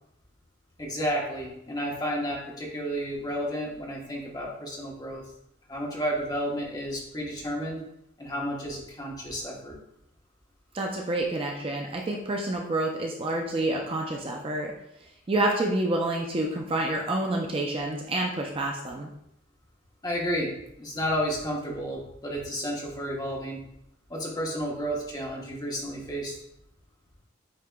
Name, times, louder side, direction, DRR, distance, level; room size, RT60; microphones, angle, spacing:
voice 1, 0.8-5.2 5.7-7.8 8.2-9.8 20.0-20.5 20.8-23.6 24.1-26.4, equal, 20° left, -3 dB, 0.9 m, -31 dB
voice 2, 10.7-14.7 15.0-19.1, right 2 dB, 25° right, 0 dB, 0.4 m, -28 dB
8.3 x 2.8 x 2.2 m, 0.78 s
head